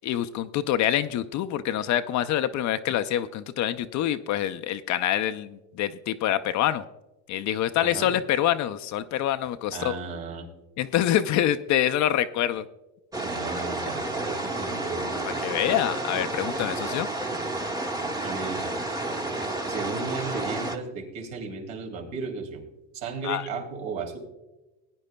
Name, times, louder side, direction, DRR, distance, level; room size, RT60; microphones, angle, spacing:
voice 1, 0.0-6.8 7.3-10.0 10.8-12.7 15.4-17.1 23.2-23.5, left 11 dB, 40° left, 11 dB, 0.4 m, -26 dB
voice 2, 7.8-8.1 9.7-10.5 13.2-15.3 18.2-18.7 19.7-22.6 22.9-24.2, right 4 dB, 80° right, 1 dB, 2.9 m, -35 dB
sound 1, 13.1-20.8, right 2 dB, 10° right, 0.8 m, -31 dB
19.5 x 9.6 x 2.2 m, 1.1 s
supercardioid pair, 120°, 47 cm